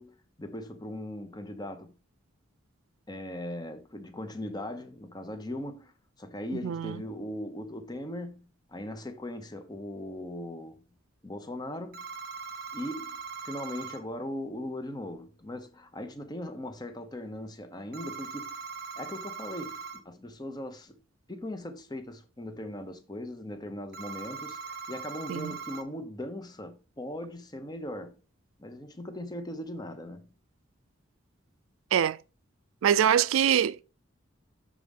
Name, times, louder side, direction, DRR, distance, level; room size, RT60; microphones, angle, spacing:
voice 1, 0.0-2.0 3.1-5.9 6.2-10.8 11.2-12.1 12.7-18.6 19.0-21.0 21.3-28.2 28.6-30.3, left 1 dB, 20° left, 0.8 m, -39 dB
voice 2, 6.6-7.0 25.3-25.6 31.9-32.2 32.8-33.8, right 9 dB, 75° right, 0.3 m, -24 dB
sound 1, 11.9-14.0 17.9-20.0 23.9-25.8, right 5 dB, 50° right, 0.7 m, -40 dB
6.7 x 3.7 x 5.3 m
head